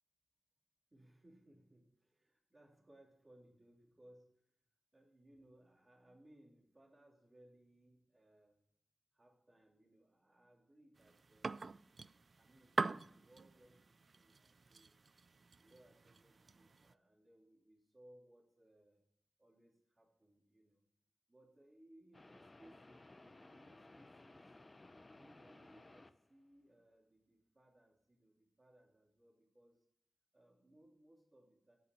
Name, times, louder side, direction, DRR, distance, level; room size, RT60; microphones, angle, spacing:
voice 1, 0.9-4.5 4.9-8.6 9.1-14.9 15.6-19.0 19.4-20.8 21.3-24.5 25.1-29.9 30.3-31.8, right 1 dB, 30° right, 0 dB, 2.7 m, -66 dB
sound 1, 11.0-16.9, right 4 dB, 60° right, 0.3 m, -44 dB
sound 2, 22.1-26.4, left 2 dB, 30° left, 0.6 m, -59 dB
8.1 x 6.8 x 7.0 m, 0.73 s
wide cardioid pair, 80°, 0 cm